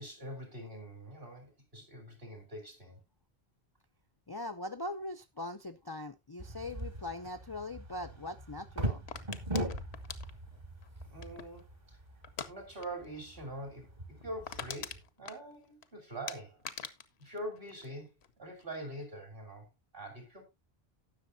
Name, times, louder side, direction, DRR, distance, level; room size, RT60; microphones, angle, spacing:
voice 1, 0.0-3.0 11.1-12.0 12.4-16.6 17.2-18.1 18.4-19.7 19.9-20.4, right 1 dB, 60° right, 3.9 m, -44 dB
voice 2, 4.3-9.1, left 2 dB, 30° left, 0.5 m, -41 dB
sound 1, 6.4-15.0, right 1 dB, 45° right, 2.0 m, -41 dB
sound 2, 9.1-11.6 12.2-12.5 12.8-13.1 13.3-13.4 13.8-13.9 14.2-15.9 16.3-18.3 18.6-19.0, left 7 dB, 85° left, 1.1 m, -44 dB
18.0 x 6.5 x 2.6 m
omnidirectional pair, 1.1 m